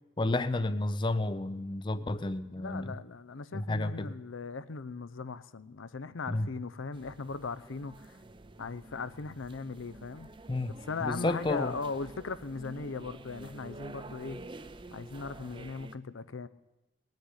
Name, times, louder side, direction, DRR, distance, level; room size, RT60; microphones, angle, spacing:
voice 1, 0.2-2.9 3.5-4.1 6.3-6.5 10.5-11.7, left 2 dB, 25° left, 0.4 m, -31 dB
voice 2, 2.6-8.2 8.6-10.3 10.9-14.4 14.9-16.5, left 4 dB, 85° left, 0.6 m, -38 dB
sound 1, 6.9-16.0, right 2 dB, 25° right, 0.6 m, -48 dB
19.5 x 6.6 x 9.8 m
head